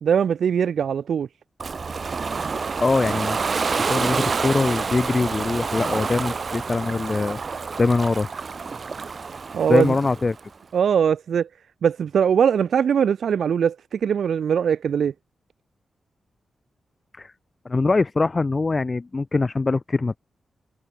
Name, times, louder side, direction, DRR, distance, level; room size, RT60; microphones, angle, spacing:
voice 1, 0.0-1.3 9.5-9.9 10.7-11.5 11.8-15.1, right 7 dB, 80° right, 2.6 m, -21 dB
Ocean, 1.6-10.4, right 4 dB, 50° right, 4.8 m, -28 dB
voice 2, 2.8-8.3 9.7-10.4 17.2-17.3 17.6-20.2, left 3 dB, 35° left, 0.8 m, -23 dB
cardioid pair, 75°, 0 cm